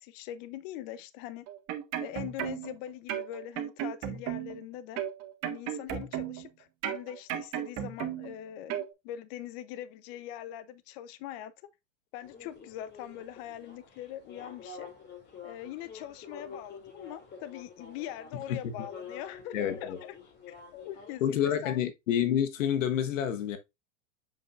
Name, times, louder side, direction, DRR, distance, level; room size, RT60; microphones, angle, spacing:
voice 1, 0.0-1.5 2.0-5.0 5.5-11.5 12.1-14.9 15.4-19.5 19.8-19.9 20.5-21.8, left 12 dB, 50° left, 0.8 m, -42 dB
sound 1, 1.5-2.8 3.1-4.6 5.0-6.5 6.8-8.4 8.7-8.9, right 11 dB, 40° right, 1.6 m, -35 dB
sound 2, 12.2-21.2, left 5 dB, 30° left, 2.4 m, -48 dB
voice 2, 19.5-20.0 21.2-23.6, left 9 dB, 80° left, 1.4 m, -28 dB
7.5 x 5.3 x 2.5 m
hypercardioid pair, 120°, 38 cm